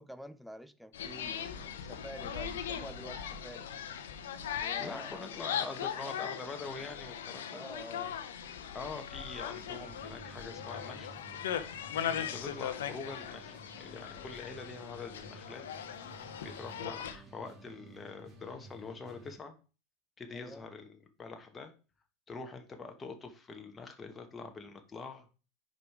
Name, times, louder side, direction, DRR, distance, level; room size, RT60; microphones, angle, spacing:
voice 1, 0.0-3.7 4.6-6.4 6.8-7.0 7.5-8.2 20.3-20.6, equal, ahead, 0.5 m, -48 dB
sound 1, 0.9-17.2, left 8 dB, 80° left, 0.7 m, -39 dB
voice 2, 4.8-7.7 8.7-11.1 12.0-15.6 16.0-19.6 20.2-21.7 22.3-25.3, left 4 dB, 20° left, 1.0 m, -45 dB
sound 2, 9.5-19.3, right 2 dB, 35° right, 2.5 m, -54 dB
5.1 x 4.9 x 4.6 m
hypercardioid pair, 95°, 0 cm